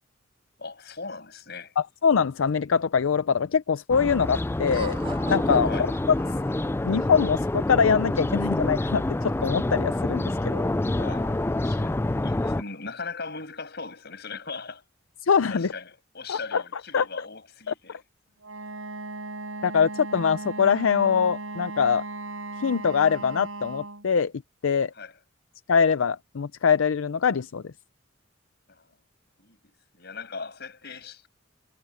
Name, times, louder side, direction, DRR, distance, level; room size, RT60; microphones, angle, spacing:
voice 1, 0.6-1.7 5.6-5.9 11.0-14.8 15.5-18.0 24.9-25.1 28.7-28.9 29.4-29.6 29.9-31.3, left 4 dB, 55° left, 6.5 m, -39 dB
voice 2, 1.8-5.0 5.3-5.9 6.8-10.7 15.2-15.7 16.3-16.6 16.9-17.1 17.7-17.8 19.6-22.0 22.6-24.3 24.6-24.9 25.7-27.7, left 6 dB, 80° left, 0.5 m, -23 dB
sound 1, 3.9-12.6, left 1 dB, 10° left, 0.3 m, -27 dB
Laughter, 4.5-6.9, right 3 dB, 25° right, 1.8 m, -41 dB
Wind instrument woodwind instrument, 18.4-24.1, right 2 dB, 80° right, 6.8 m, -37 dB
head